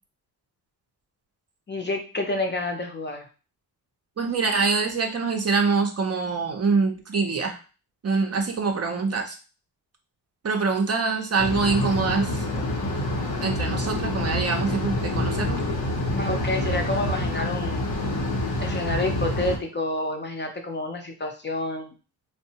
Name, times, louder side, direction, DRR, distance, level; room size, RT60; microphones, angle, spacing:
voice 1, 1.7-3.3 16.1-17.9 18.6-21.9, left 2 dB, 25° left, 3 dB, 0.6 m, -29 dB
voice 2, 4.2-7.6 8.0-9.4 10.4-12.6 13.4-15.6, right 4 dB, 35° right, 3 dB, 0.5 m, -25 dB
sound 1, 11.4-19.6, left 1 dB, 75° left, 0.8 m, -27 dB
2.6 x 2.1 x 2.7 m, 0.34 s
supercardioid pair, 45°, 42 cm